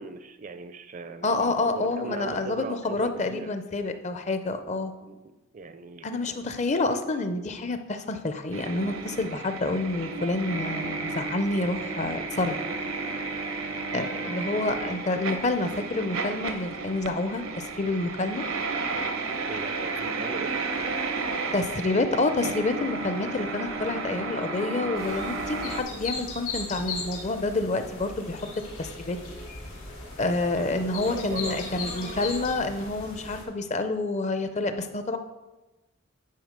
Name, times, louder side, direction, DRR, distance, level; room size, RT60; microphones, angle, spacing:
voice 1, 0.0-3.5 5.0-5.2 5.5-6.4 19.5-20.5 30.5-32.1, right 3 dB, 40° right, 11 dB, 0.5 m, -39 dB
voice 2, 1.2-4.9 6.0-12.6 13.9-18.4 21.5-28.5 28.8-29.2 30.2-35.2, left 2 dB, 35° left, 9 dB, 0.6 m, -28 dB
sound 1, 8.5-25.8, right 3 dB, 80° right, 0.8 m, -32 dB
sound 2, 25.0-33.4, left 3 dB, 85° left, 2.9 m, -38 dB
9.3 x 4.9 x 5.2 m, 1.1 s
head